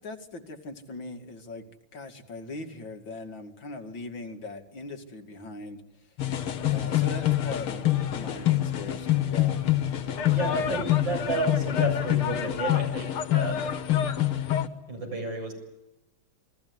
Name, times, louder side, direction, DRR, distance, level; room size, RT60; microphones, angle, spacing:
voice 1, 0.0-1.6 1.9-5.8 6.7-7.8 8.1-9.6, left 2 dB, 60° left, 5 dB, 3.1 m, -40 dB
sound 1, 6.2-14.7, left 12 dB, 85° left, 2.4 m, -26 dB
voice 2, 10.3-13.7 14.9-15.5, right 2 dB, 60° right, 5 dB, 8.5 m, -32 dB
28.5 x 21.5 x 9.6 m, 0.96 s
omnidirectional pair, 2.3 m